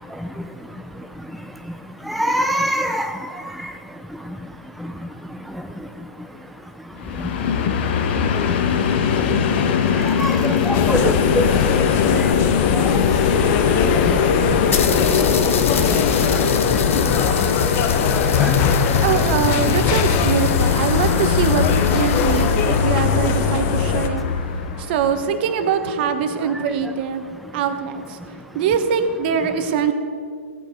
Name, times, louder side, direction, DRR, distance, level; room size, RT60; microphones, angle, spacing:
voice 1, 2.1-3.1 10.2-11.5 18.4-18.6, equal, ahead, 5 dB, 0.4 m, -22 dB
Train, 7.0-25.1, left 6 dB, 50° left, 1.2 m, -21 dB
sound 1, 9.9-12.5 13.4-13.5 13.7-13.8 14.1-14.2 14.7-22.9, left 7 dB, 70° left, 1.2 m, -31 dB
sound 2, 10.7-24.1, left 7 dB, 30° left, 0.9 m, -22 dB
voice 2, 18.8-24.3 24.8-27.3 27.5-28.2 28.5-29.9, right 7 dB, 45° right, 9 dB, 1.1 m, -23 dB
16.0 x 8.4 x 5.1 m, 2.3 s
hypercardioid pair, 125°, 7 cm